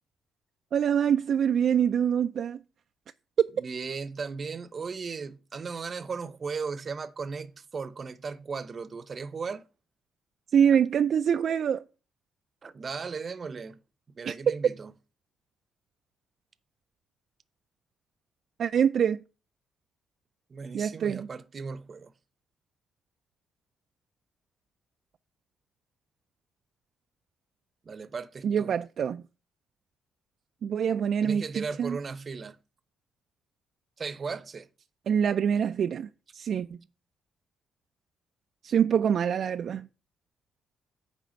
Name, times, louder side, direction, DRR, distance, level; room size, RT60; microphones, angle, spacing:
voice 1, 0.7-2.6 3.4-3.5 10.5-11.8 14.3-14.5 18.6-19.2 20.7-21.3 28.4-29.2 30.6-32.0 35.1-36.8 38.6-39.9, right 8 dB, 60° right, 0.3 m, -25 dB
voice 2, 3.6-9.7 12.6-13.8 14.1-14.9 20.5-22.1 27.8-28.8 31.2-32.6 34.0-34.7, right 5 dB, 40° right, 0.7 m, -36 dB
9.5 x 3.4 x 6.4 m
cardioid pair, 90°, 0 cm